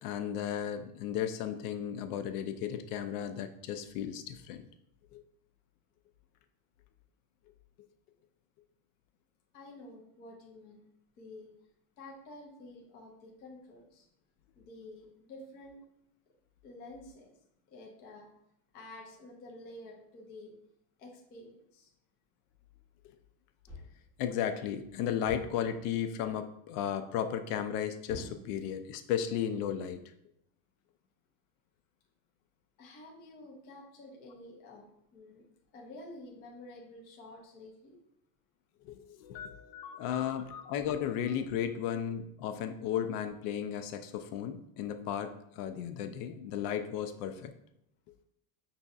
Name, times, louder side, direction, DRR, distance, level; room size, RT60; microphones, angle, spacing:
voice 1, 0.0-4.6 5.1-5.2 24.2-30.0 38.8-47.5, left 9 dB, 75° left, 8 dB, 0.6 m, -35 dB
voice 2, 9.5-10.8 11.2-11.5 12.0-14.1 14.6-15.8 16.6-17.3 17.7-18.3 18.7-20.5 21.0-21.9 32.8-35.4 35.7-38.0 39.9-40.4 40.9-41.0, left 2 dB, 25° left, -2 dB, 0.3 m, -50 dB
sound 1, 23.7-24.2 25.3-26.0 28.1-29.0, left 1 dB, 10° left, 0.7 m, -47 dB
5.6 x 2.7 x 2.4 m, 0.76 s
cardioid pair, 170°, 47 cm